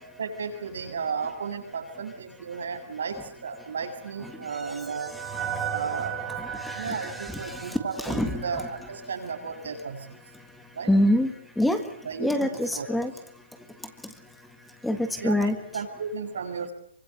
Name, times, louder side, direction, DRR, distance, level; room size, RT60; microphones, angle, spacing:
voice 1, 0.2-5.2 5.7-6.2 6.7-10.2 10.7-10.9 12.0-12.9 15.2-16.7, right 5 dB, 80° right, 4 dB, 7.5 m, -34 dB
sound 1, 3.7-9.0, right 8 dB, 15° right, 3.7 m, -36 dB
voice 2, 6.4-8.7 10.9-11.3 11.6-11.8 12.2-13.1 14.8-15.6, left 1 dB, ahead, 7 dB, 1.7 m, -26 dB
26.0 x 24.5 x 8.0 m, 0.64 s
hypercardioid pair, 165°, 0 cm